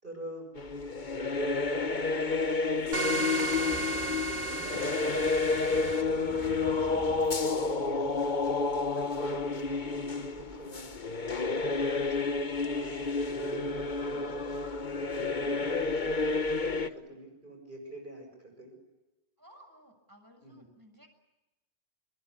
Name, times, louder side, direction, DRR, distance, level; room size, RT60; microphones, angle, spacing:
voice 1, 0.0-0.5 1.2-4.7 5.6-11.1 11.6-14.6 15.1-18.7 20.4-20.6, right 1 dB, 45° right, 2 dB, 7.9 m, -46 dB
sound 1, 0.6-16.9, left 3 dB, 45° left, 1.4 m, -30 dB
sound 2, 2.9-6.0, right 3 dB, 80° right, 2.2 m, -33 dB
Thunder, 3.5-9.2, equal, ahead, 4.7 m, -49 dB
voice 2, 19.4-21.1, equal, 15° right, 5 dB, 6.8 m, -57 dB
26.0 x 22.5 x 9.9 m, 1.0 s
omnidirectional pair, 1.2 m